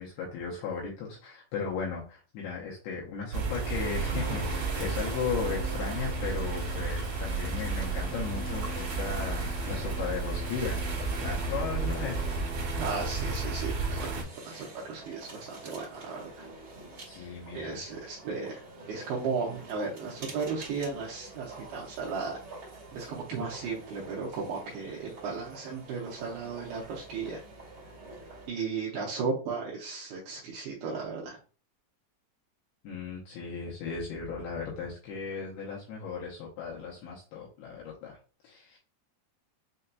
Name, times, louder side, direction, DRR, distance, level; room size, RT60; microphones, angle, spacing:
voice 1, 0.0-10.8 11.2-12.3 17.0-17.8 32.8-38.2 38.4-38.8, left 5 dB, 75° left, -3 dB, 2.4 m, -36 dB
sound 1, 3.3-14.2, right 3 dB, 60° right, 2.0 m, -32 dB
Stream, 3.7-12.4, left 2 dB, 55° left, 1.6 m, -45 dB
sound 2, 12.0-28.5, right 2 dB, 45° right, 1.5 m, -48 dB
voice 2, 12.8-16.5 17.2-22.6 22.9-27.4 28.5-31.4, right 5 dB, 80° right, -3 dB, 2.4 m, -35 dB
6.6 x 2.7 x 2.2 m, 0.37 s
omnidirectional pair, 5.1 m